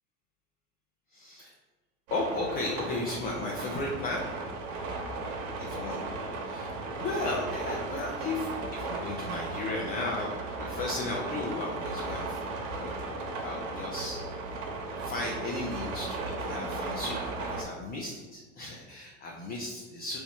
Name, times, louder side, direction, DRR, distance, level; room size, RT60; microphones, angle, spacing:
voice 1, 1.1-1.5 2.1-4.3 5.6-6.0 6.4-12.4 12.7-13.0 13.4-14.2 15.0-20.2, left 2 dB, 25° left, -1 dB, 0.5 m, -35 dB
sound 1, 2.1-17.6, right 3 dB, 55° right, 0.8 m, -36 dB
2.9 x 2.2 x 4.2 m, 1.3 s
hypercardioid pair, 95°, 38 cm